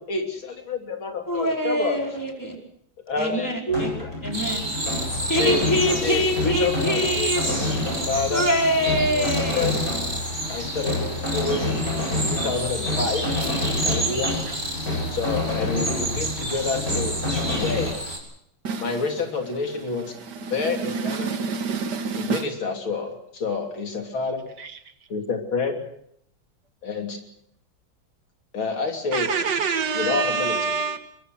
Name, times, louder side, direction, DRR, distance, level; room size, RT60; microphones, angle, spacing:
voice 1, 0.0-2.0 3.1-4.1 5.3-5.6 5.9-7.4 7.8-8.4 8.8-9.3 9.6-9.8 10.5-11.6 12.3-13.3 13.8-14.3 15.1-17.2 17.5-17.9 18.8-21.3 22.1-24.4 25.1-25.8 26.8-27.2 28.5-29.3 29.9-30.8, left 4 dB, 80° left, 4.0 m, -28 dB
voice 2, 1.3-2.6 3.2-3.9 4.2-4.6 5.3-7.4 8.3-9.7 20.6-20.7, equal, 10° left, 4.8 m, -24 dB
sound 1, 3.7-17.9, left 2 dB, 45° left, 8.7 m, -28 dB
sound 2, 4.3-18.2, right 1 dB, 20° right, 4.9 m, -30 dB
voice 3, 18.6-19.0 20.1-22.5 24.6-24.7 29.1-31.2, right 5 dB, 60° right, 1.9 m, -27 dB
23.0 x 22.5 x 6.4 m
omnidirectional pair, 2.2 m